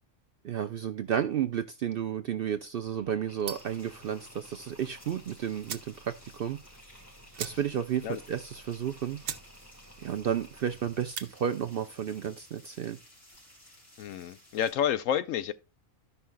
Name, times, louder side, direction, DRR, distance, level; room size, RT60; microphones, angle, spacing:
voice 1, 0.4-6.6 7.4-9.2 10.0-13.0, right 9 dB, 65° right, 0.6 m, -32 dB
Mechanisms, 2.8-12.5, equal, 15° left, 1.3 m, -55 dB
sound 1, 3.4-3.8 5.2-5.3 5.6-6.0 6.4-6.5 6.7-6.8 7.3-7.9 8.3-8.4 8.9-9.0 9.2-9.5 9.8-10.2 11.0-11.3, right 8 dB, 85° right, 1.2 m, -39 dB
sound 2, 3.5-14.7, left 1 dB, 50° left, 4.9 m, -57 dB
voice 2, 14.0-15.5, left 9 dB, 75° left, 1.0 m, -29 dB
14.0 x 5.6 x 2.2 m
omnidirectional pair, 1.4 m